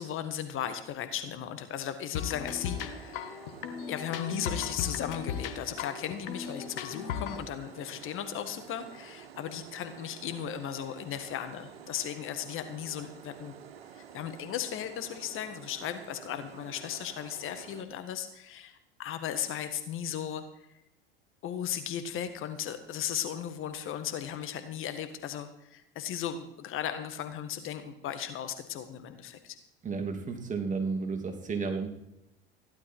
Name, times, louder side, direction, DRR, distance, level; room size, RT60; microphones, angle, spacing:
voice 1, 0.0-3.4 3.9-13.5 14.0-20.4 21.4-29.6, left 9 dB, 45° left, 9 dB, 1.6 m, -36 dB
sound 1, 2.1-7.4, left 8 dB, 70° left, 1.7 m, -37 dB
sound 2, 2.5-17.8, right 8 dB, 80° right, 1.4 m, -50 dB
voice 2, 29.8-31.9, right 4 dB, 25° right, 4 dB, 3.0 m, -32 dB
15.5 x 11.5 x 4.6 m, 0.83 s
hypercardioid pair, 80°, 30 cm